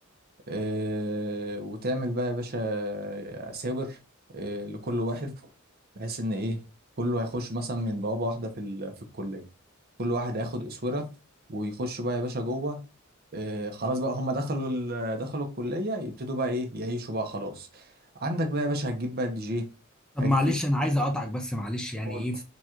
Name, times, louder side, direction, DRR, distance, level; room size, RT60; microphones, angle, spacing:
voice 1, 0.5-4.0 4.3-5.3 6.0-6.6 7.0-9.4 10.0-11.1 11.5-12.8 13.3-17.8 18.1-19.7 20.2-20.5 22.0-22.3, equal, 50° right, 0.8 m, -31 dB
voice 2, 20.2-22.4, left 1 dB, 5° left, 0.4 m, -27 dB
4.0 x 2.4 x 4.4 m
head